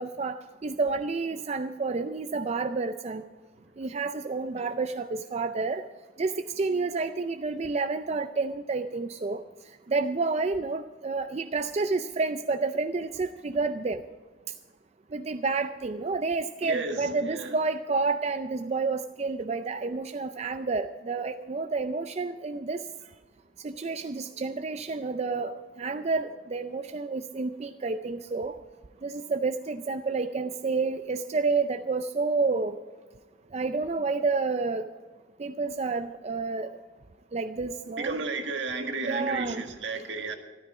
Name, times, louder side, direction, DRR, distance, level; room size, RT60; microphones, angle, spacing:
voice 1, 0.0-3.2 3.8-5.8 6.2-9.4 9.9-14.0 15.1-22.8 23.6-28.6 29.0-32.8 33.5-34.8 35.4-36.7 37.3-38.1 39.1-39.6, right 4 dB, 35° right, 9 dB, 0.5 m, -29 dB
voice 2, 16.6-17.6 38.0-40.4, right 3 dB, 75° right, 5 dB, 1.7 m, -33 dB
13.5 x 12.5 x 4.9 m, 1.4 s
head